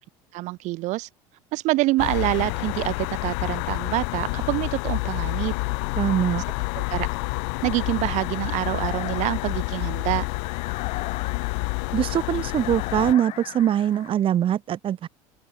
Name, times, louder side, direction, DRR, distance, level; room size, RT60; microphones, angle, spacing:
voice 1, 0.3-1.1 1.5-5.5 6.8-7.1 7.6-10.2, right 20 dB, 60° right, 5.5 m, -26 dB
sound 1, 2.0-13.1, left 40 dB or more, 75° left, 5.6 m, -28 dB
voice 2, 6.0-6.4 11.9-15.1, right 10 dB, 40° right, 5.0 m, -23 dB
sound 2, 7.7-14.1, left 16 dB, 55° left, 6.4 m, -39 dB
open air
supercardioid pair, 115°, 14 cm